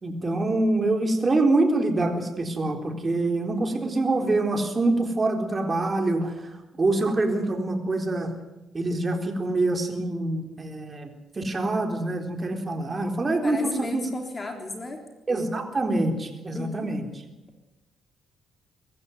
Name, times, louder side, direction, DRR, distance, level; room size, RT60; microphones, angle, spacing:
voice 1, 0.0-6.5 6.8-8.3 8.7-11.1 11.4-14.1 15.3-17.1, right 2 dB, 30° right, 4 dB, 3.8 m, -25 dB
voice 2, 13.4-15.0 16.5-16.9, left 2 dB, 25° left, 4 dB, 3.7 m, -35 dB
23.0 x 14.0 x 9.6 m, 1.0 s
cardioid pair, 90°, 0 cm